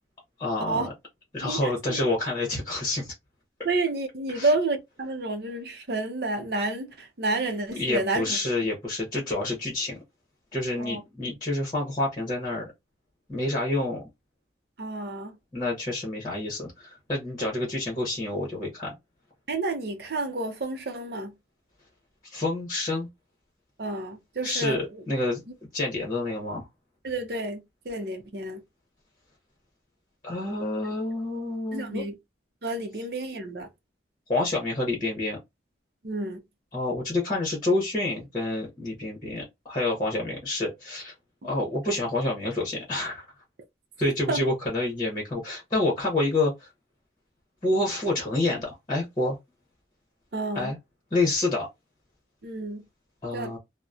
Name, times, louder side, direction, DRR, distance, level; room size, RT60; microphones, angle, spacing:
voice 1, 0.4-0.9 1.3-3.1 4.3-4.5 7.8-10.0 10.5-12.7 13.3-14.0 15.5-18.9 22.2-23.1 24.4-25.4 25.7-26.7 30.2-32.0 34.3-35.4 36.7-41.1 41.4-43.2 44.0-46.7 47.6-49.4 50.5-50.8 51.1-51.7 53.2-53.6, left 2 dB, 20° left, 0.9 m, -28 dB
voice 2, 1.4-2.0 3.6-8.4 10.8-11.0 14.8-15.3 19.5-21.3 23.8-25.0 27.0-27.6 27.8-28.6 30.8-31.0 31.7-32.1 32.6-33.7 36.0-36.4 44.3-44.4 50.3-50.7 52.4-52.8 53.3-53.6, right 2 dB, 60° right, 0.6 m, -30 dB
2.8 x 2.1 x 2.3 m
head